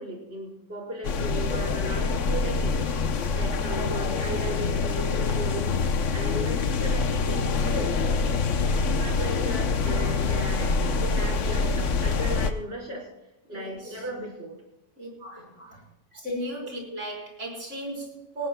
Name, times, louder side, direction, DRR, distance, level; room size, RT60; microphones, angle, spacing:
voice 1, 0.0-2.8 3.3-5.7 6.1-7.9 9.0-13.1 13.5-14.6 15.4-15.7, right 1 dB, 55° right, -1 dB, 5.4 m, -36 dB
sound 1, 1.0-12.5, left 4 dB, 85° left, 1.3 m, -25 dB
voice 2, 8.6-9.0 13.5-14.0 15.0-15.9 16.1-18.5, right 1 dB, 85° right, -2 dB, 4.9 m, -36 dB
19.0 x 19.0 x 2.3 m, 0.91 s
omnidirectional pair, 1.2 m